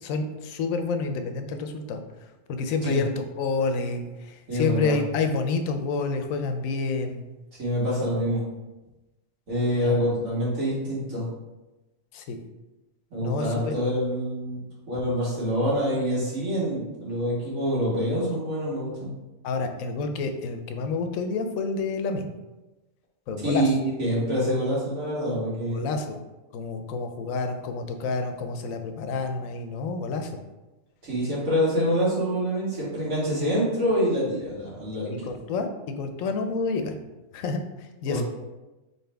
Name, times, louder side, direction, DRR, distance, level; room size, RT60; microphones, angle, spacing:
voice 1, 0.0-2.0 2.5-3.1 3.4-7.2 9.7-10.0 12.1-12.4 13.2-13.7 19.4-22.3 23.3-23.7 25.7-26.2 26.5-30.4 35.1-36.9 37.3-37.6 38.0-38.2, left 4 dB, 85° left, 6 dB, 1.0 m, -29 dB
voice 2, 4.5-4.9 7.6-8.4 9.5-11.2 13.1-14.6 14.9-19.1 23.4-25.8 31.0-35.3 38.1-38.2, equal, 85° right, -7 dB, 2.2 m, -26 dB
4.1 x 3.9 x 3.4 m, 1.1 s
omnidirectional pair, 1.4 m